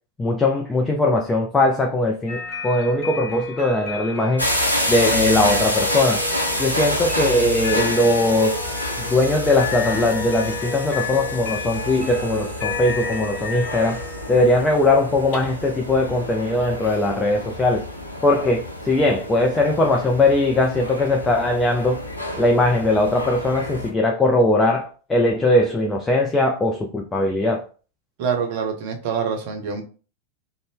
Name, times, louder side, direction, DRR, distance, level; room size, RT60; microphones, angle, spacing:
voice 1, 0.2-4.5 4.9-6.2 6.6-8.6 9.0-14.0 14.3-17.8 18.2-22.0 22.4-27.7, left 2 dB, 15° left, 1 dB, 0.4 m, -20 dB
sound 1, 2.3-21.3, left 4 dB, 40° left, 1.0 m, -33 dB
sound 2, 4.4-23.9, left 1 dB, 85° left, 0.5 m, -28 dB
voice 2, 28.2-29.8, right 6 dB, 50° right, 4 dB, 0.6 m, -25 dB
2.5 x 2.1 x 3.4 m, 0.37 s
figure-of-eight pair, 90°, 0 cm